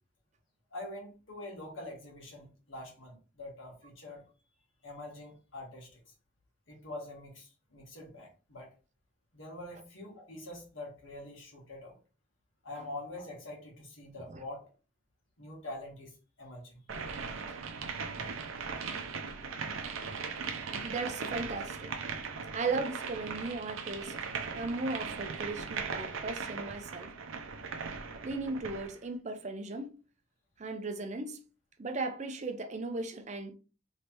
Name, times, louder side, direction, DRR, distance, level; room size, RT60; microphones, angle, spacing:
voice 1, 0.7-4.2 4.8-6.0 6.7-8.7 9.3-12.0 12.6-14.7 15.4-16.8, left 1 dB, 70° left, 1.6 m, -45 dB
sound 1, 16.9-29.0, right 5 dB, 75° right, 0.6 m, -39 dB
voice 2, 20.8-21.9 22.5-24.1 24.5-27.1 28.2-30.0 30.6-31.4 31.8-33.5, right 3 dB, 35° right, 0.5 m, -36 dB
3.3 x 3.2 x 2.9 m
head